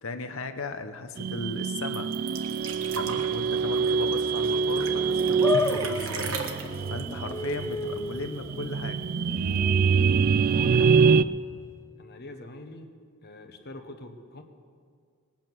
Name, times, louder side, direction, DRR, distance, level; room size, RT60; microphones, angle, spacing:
voice 1, 0.0-2.1 2.9-6.4 6.9-9.1, left 3 dB, 65° left, 8 dB, 0.9 m, -36 dB
sound 1, 1.2-11.2, right 5 dB, 40° right, 0.3 m, -25 dB
sound 2, 1.9-8.4 8.6-8.7 9.0-9.8 10.6-10.7, right 4 dB, 65° right, 1.4 m, -39 dB
sound 3, 5.4-11.9, left 4 dB, 15° left, 0.5 m, -34 dB
voice 2, 10.5-11.1 12.0-12.9 13.2-14.4, left 2 dB, 50° left, 6 dB, 1.2 m, -44 dB
19.5 x 8.9 x 6.0 m, 2.1 s
head